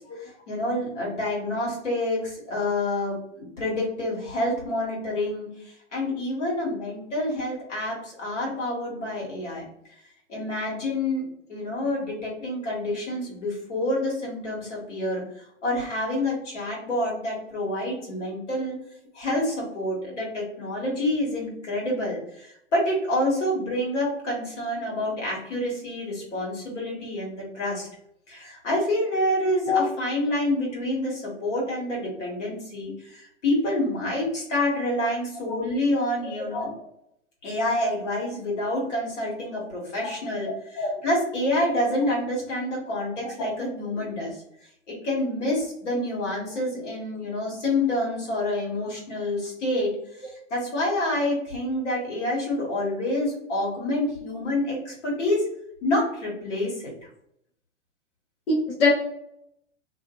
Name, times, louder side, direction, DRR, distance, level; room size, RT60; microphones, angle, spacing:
voice 1, 0.2-9.6 10.3-11.2 11.5-18.8 19.1-27.9 28.3-36.7 37.4-44.4 44.9-49.9 50.2-55.4 55.8-56.9, left 1 dB, 75° left, -3 dB, 1.4 m, -28 dB
voice 2, 58.5-58.9, left 4 dB, 50° left, -3 dB, 0.8 m, -22 dB
2.6 x 2.5 x 2.3 m, 0.73 s
hypercardioid pair, 105°, 36 cm